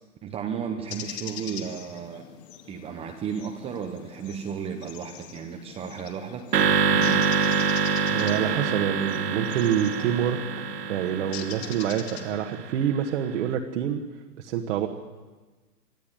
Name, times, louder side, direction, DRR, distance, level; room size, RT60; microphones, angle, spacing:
voice 1, 0.2-2.3 2.7-7.6, right 7 dB, 10° right, 4 dB, 0.8 m, -34 dB
sound 1, 0.9-12.3, left 10 dB, 40° left, 2.2 m, -43 dB
sound 2, 6.5-12.9, right 5 dB, 85° right, 2.4 m, -26 dB
voice 2, 8.1-10.4 10.9-14.0 14.4-14.9, right 9 dB, 50° right, 1 dB, 1.7 m, -26 dB
24.0 x 14.0 x 9.1 m, 1.3 s
hypercardioid pair, 150°, 46 cm